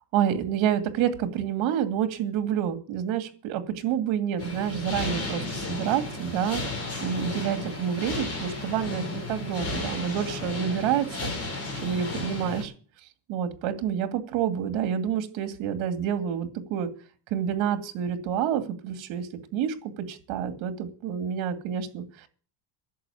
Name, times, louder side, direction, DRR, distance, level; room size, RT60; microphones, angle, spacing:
voice 1, 0.1-6.6 7.0-11.3 11.8-12.7 13.3-16.9 17.3-22.3, right 9 dB, 70° right, 9 dB, 2.4 m, -28 dB
sound 1, 4.4-12.6, left 2 dB, 30° left, 5.3 m, -33 dB
11.0 x 7.7 x 9.4 m, 0.40 s
cardioid pair, 150°, 48 cm